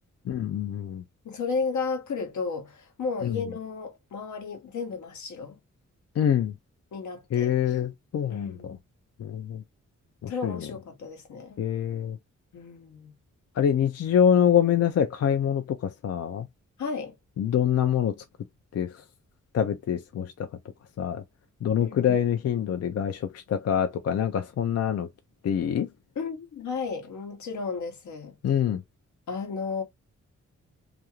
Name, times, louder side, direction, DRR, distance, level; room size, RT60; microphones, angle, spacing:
voice 1, 0.3-1.0 3.2-3.3 6.2-6.5 7.3-8.4 9.2-9.6 10.2-10.5 11.6-12.2 13.6-16.5 17.4-18.1 18.7-18.9 19.5-20.3 21.0-21.2 21.6-23.2 23.5-25.1 25.4-25.9 28.4-28.8, left 9 dB, 60° left, 0.4 m, -25 dB
voice 2, 1.2-5.6 6.9-7.5 8.3-8.8 10.3-11.6 12.5-13.1 16.8-17.1 21.8-22.2 26.1-28.4 29.3-29.8, left 4 dB, 80° left, 0.9 m, -33 dB
2.5 x 2.3 x 2.9 m
cardioid pair, 80°, 29 cm